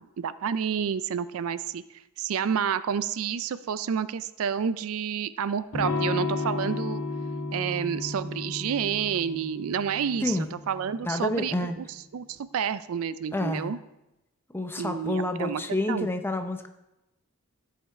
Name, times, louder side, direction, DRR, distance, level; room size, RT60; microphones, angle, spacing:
voice 1, 0.0-1.8 2.2-7.0 7.5-10.4 10.7-11.8 12.1-13.8 14.8-15.6 15.9-16.1, right 7 dB, 70° right, 15 dB, 0.4 m, -29 dB
Electric guitar / Strum, 5.7-11.4, left 3 dB, 80° left, 1.7 m, -33 dB
voice 2, 11.0-11.8 13.3-13.8 14.5-16.7, left 1 dB, 10° left, 6 dB, 0.6 m, -29 dB
14.0 x 5.7 x 4.3 m, 0.94 s
head